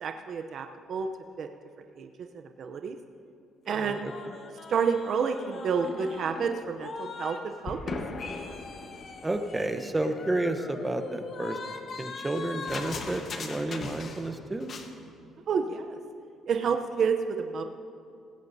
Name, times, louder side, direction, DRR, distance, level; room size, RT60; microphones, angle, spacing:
voice 1, 0.0-1.1 1.4-1.5 2.0-2.1 2.6-3.0 3.7-4.1 4.7-7.8 15.5-15.9 16.5-17.6, right 6 dB, 50° right, 6 dB, 0.6 m, -29 dB
sound 1, 3.7-7.4 7.7-14.4 14.6-14.9, left 4 dB, 45° left, 1.1 m, -39 dB
voice 2, 3.7-4.1 9.2-11.6 12.0-14.7, right 2 dB, 15° right, 7 dB, 0.8 m, -31 dB
19.0 x 16.0 x 2.7 m, 2.5 s
cardioid pair, 125°, 0 cm